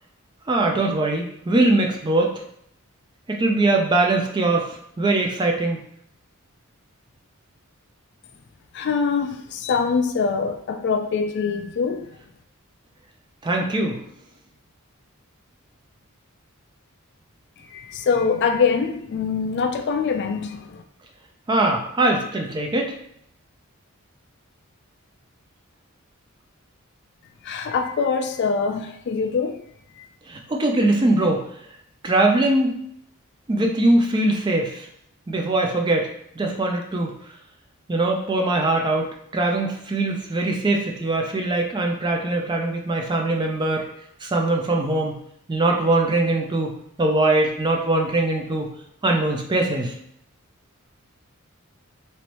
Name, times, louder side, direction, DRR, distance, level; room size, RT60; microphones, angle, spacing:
voice 1, 0.5-2.4 3.3-5.8 13.4-14.0 21.5-22.9 30.3-31.4 32.0-32.8 33.5-34.9 35.3-36.1 36.4-37.1 37.9-43.9 44.2-45.2 45.5-48.7 49.0-49.9, right 2 dB, 20° right, 1 dB, 0.4 m, -22 dB
voice 2, 8.7-12.1 17.7-20.8 27.4-29.6 30.0-30.1, left 5 dB, 55° left, 5 dB, 0.3 m, -24 dB
3.1 x 3.0 x 2.9 m, 0.71 s
head